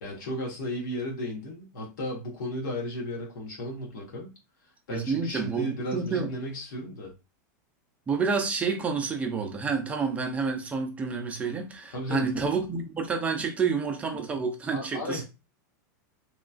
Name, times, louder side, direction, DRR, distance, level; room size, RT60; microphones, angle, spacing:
voice 1, 0.0-4.3 4.9-7.1 11.9-12.3 14.7-15.2, equal, 80° left, 1.2 m, -34 dB
voice 2, 4.9-6.3 8.1-15.2, right 5 dB, 15° right, 0.4 m, -29 dB
3.0 x 2.3 x 2.4 m
supercardioid pair, 145°, 10 cm